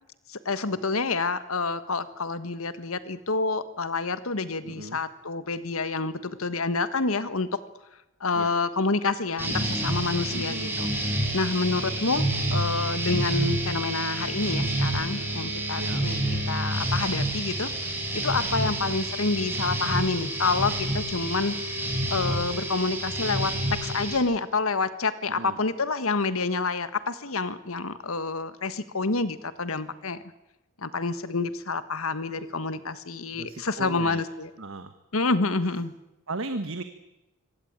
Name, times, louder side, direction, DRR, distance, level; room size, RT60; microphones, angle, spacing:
voice 1, 0.3-7.6 8.2-10.9 11.3-12.2 12.5-16.2 16.5-21.8 22.1-30.2 30.8-34.5 35.1-35.9, left 3 dB, 75° left, 13 dB, 1.5 m, -28 dB
voice 2, 4.6-5.0 8.3-8.5 10.3-10.7 15.7-16.0 18.6-19.0 25.3-25.6 33.3-34.2 34.6-34.9 36.3-36.8, right 2 dB, 70° right, 9 dB, 1.3 m, -36 dB
sound 1, 9.4-24.2, right 1 dB, 10° right, 4.6 m, -28 dB
23.5 x 18.0 x 8.8 m, 0.96 s
head